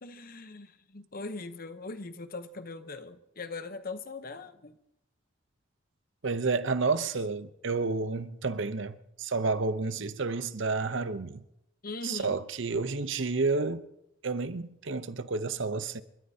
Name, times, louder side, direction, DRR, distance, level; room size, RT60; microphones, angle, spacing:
voice 1, 0.0-4.8 11.8-12.4, left 3 dB, 45° left, 0.8 m, -40 dB
voice 2, 6.2-11.4 12.0-13.9 14.2-16.0, right 4 dB, 60° right, 0.7 m, -30 dB
29.0 x 13.0 x 2.8 m
head